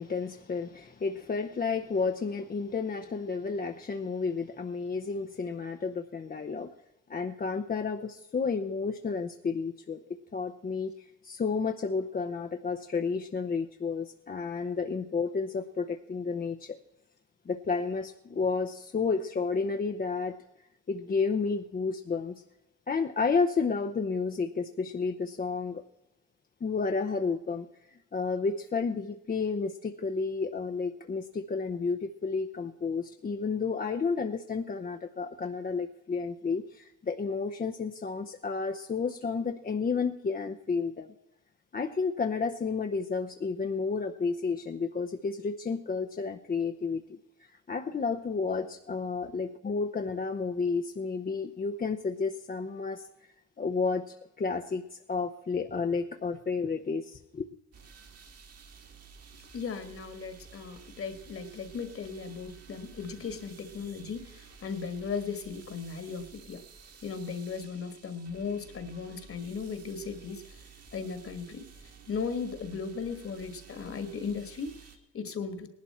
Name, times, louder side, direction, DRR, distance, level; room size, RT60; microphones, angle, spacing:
voice 1, 0.0-6.7 7.1-16.8 17.5-20.4 20.9-22.4 22.9-25.8 26.6-41.1 41.7-53.1 53.6-57.5, left 4 dB, 30° left, 0.7 m, -31 dB
sound 1, 57.7-75.0, right 6 dB, 55° right, 2.0 m, -53 dB
voice 2, 59.5-66.7 67.0-75.7, left 5 dB, 45° left, 1.8 m, -37 dB
18.5 x 11.5 x 4.3 m
cardioid pair, 90°, 30 cm